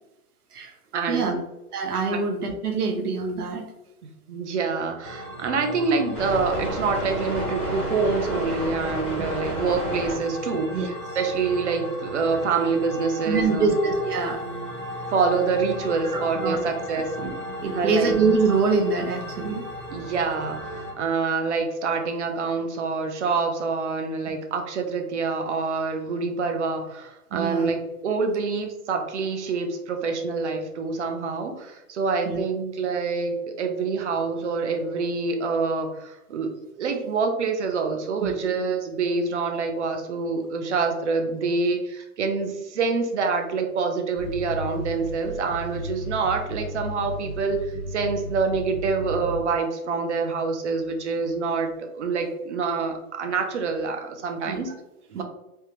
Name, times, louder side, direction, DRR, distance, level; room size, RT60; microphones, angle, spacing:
voice 1, 0.9-1.4 2.1-2.2 4.3-10.7 11.2-13.7 15.1-17.1 17.7-18.1 19.9-36.5 36.8-47.6 47.9-54.7 55.1-55.2, right 4 dB, 50° right, 5 dB, 0.6 m, -26 dB
voice 2, 1.7-3.6 10.7-10.9 13.2-14.4 16.1-16.6 16.9-17.3 17.6-19.7 27.3-27.7 32.2-32.4 38.2-38.3 54.5-54.6 55.1-55.2, right 4 dB, 85° right, 2 dB, 0.8 m, -25 dB
sound 1, 5.0-20.9, equal, 10° right, 0.7 m, -33 dB
sound 2, 44.2-49.4, equal, 40° left, 0.4 m, -34 dB
3.4 x 2.1 x 2.8 m, 0.97 s
hypercardioid pair, 165°, 44 cm